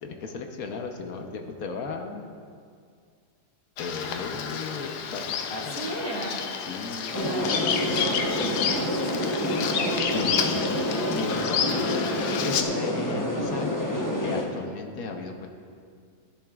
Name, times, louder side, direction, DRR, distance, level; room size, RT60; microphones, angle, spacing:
voice 1, 0.0-2.2 3.8-5.2 5.5-6.0 6.7-7.3 10.1-12.0 12.4-15.5, left 4 dB, 65° left, 4 dB, 1.2 m, -35 dB
Bird vocalization bird call bird song, 3.8-12.6, left 7 dB, 85° left, 1.2 m, -30 dB
voice 2, 5.8-6.4 7.1-9.0 9.5-10.1, right 1 dB, 85° right, -6 dB, 2.5 m, -34 dB
sound 1, 7.1-14.4, left 1 dB, 20° left, 0.6 m, -28 dB
14.5 x 10.5 x 2.3 m, 2.1 s
omnidirectional pair, 1.7 m